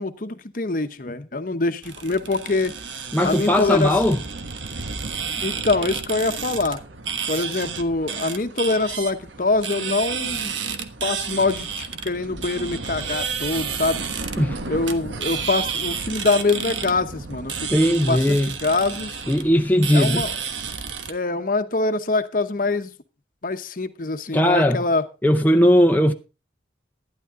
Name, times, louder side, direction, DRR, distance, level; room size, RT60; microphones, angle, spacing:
voice 1, 0.0-2.7 3.2-3.9 5.4-6.8 7.3-10.5 11.0-14.0 14.7-19.2 19.9-20.3 21.1-22.9 23.4-25.0, left 3 dB, 45° left, 0.9 m, -24 dB
sound 1, 1.8-21.1, right 6 dB, 80° right, 1.3 m, -31 dB
voice 2, 3.1-4.2 14.4-14.6 17.7-18.5 19.3-20.2 24.3-24.8 25.2-26.1, equal, 10° left, 0.6 m, -18 dB
12.0 x 10.5 x 3.7 m
head